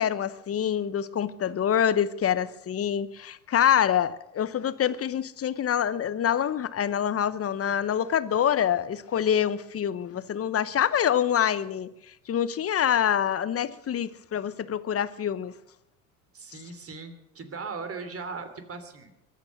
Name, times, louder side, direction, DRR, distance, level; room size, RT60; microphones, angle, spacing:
voice 1, 0.0-11.9 12.3-15.5, left 9 dB, 30° left, 0.9 m, -26 dB
voice 2, 16.3-19.3, right 4 dB, 30° right, 3.2 m, -39 dB
23.0 x 9.2 x 6.5 m
hypercardioid pair, 70°, 44 cm